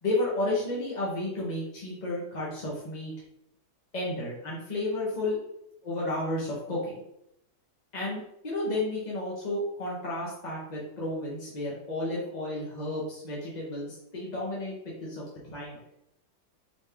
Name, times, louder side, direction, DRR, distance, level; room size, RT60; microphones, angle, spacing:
voice 1, 0.0-3.1 3.9-5.4 5.8-6.9 7.9-15.2 15.5-15.8, left 2 dB, 35° left, -5 dB, 0.8 m, -32 dB
4.2 x 3.5 x 3.4 m, 0.81 s
omnidirectional pair, 1.9 m